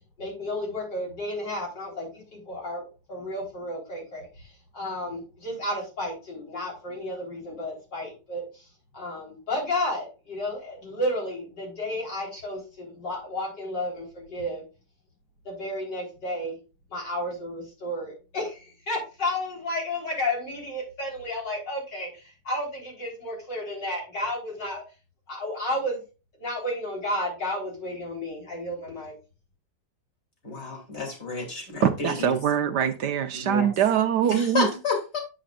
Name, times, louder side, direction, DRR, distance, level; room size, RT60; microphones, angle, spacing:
voice 1, 0.2-8.7 8.9-14.6 15.4-16.6 16.9-24.8 25.3-26.0 26.4-29.1, left 1 dB, 65° left, 4.5 m, -32 dB
voice 2, 30.4-32.4 33.3-33.7 34.3-35.2, left 4 dB, 35° left, 2.9 m, -30 dB
voice 3, 31.8-34.7, right 9 dB, 70° right, 1.2 m, -23 dB
8.3 x 7.5 x 2.4 m
omnidirectional pair, 2.0 m